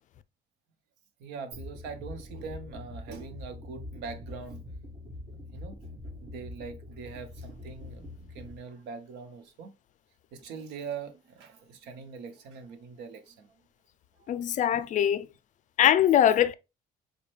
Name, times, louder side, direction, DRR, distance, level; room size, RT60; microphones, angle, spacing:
voice 1, 1.2-4.6 5.5-5.8 6.2-9.7 10.3-13.6 14.7-15.1, right 5 dB, 90° right, 0.8 m, -42 dB
sound 1, 1.5-8.6, left 2 dB, 50° right, 1.6 m, -44 dB
voice 2, 14.3-15.3 15.8-16.5, left 10 dB, 50° left, 0.4 m, -22 dB
5.1 x 2.2 x 3.2 m
cardioid pair, 110°, 17 cm